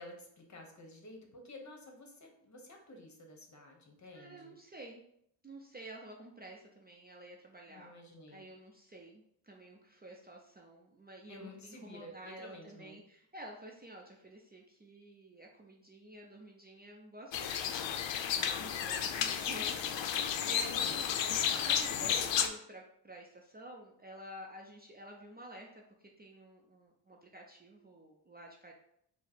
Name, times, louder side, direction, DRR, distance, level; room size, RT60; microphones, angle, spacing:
voice 1, 0.0-4.6 7.7-8.4 11.3-13.0 18.3-18.7 20.7-21.6, left 2 dB, 35° left, 2 dB, 1.0 m, -52 dB
voice 2, 4.1-5.0 5.4-7.9 8.3-21.3 21.5-25.8 26.2-28.7, right 1 dB, 20° right, -1 dB, 0.5 m, -51 dB
sound 1, 17.3-22.5, left 8 dB, 70° left, 0.6 m, -32 dB
4.5 x 2.1 x 4.4 m, 0.71 s
cardioid pair, 90°, 46 cm